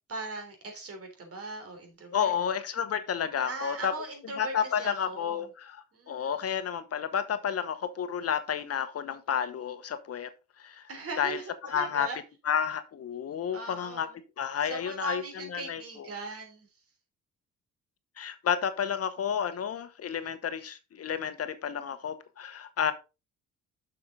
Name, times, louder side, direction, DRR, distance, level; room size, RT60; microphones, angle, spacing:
voice 1, 0.1-2.3 3.5-5.5 5.9-6.4 10.9-12.2 13.5-14.2 14.6-16.7, right 2 dB, 50° right, 3.5 m, -39 dB
voice 2, 2.1-3.9 4.4-10.3 10.6-10.8 11.2-11.4 11.6-12.1 12.4-14.1 14.4-15.2 15.5-16.1 18.2-22.9, left 8 dB, 55° left, 1.0 m, -31 dB
6.8 x 6.6 x 3.7 m
cardioid pair, 90°, 30 cm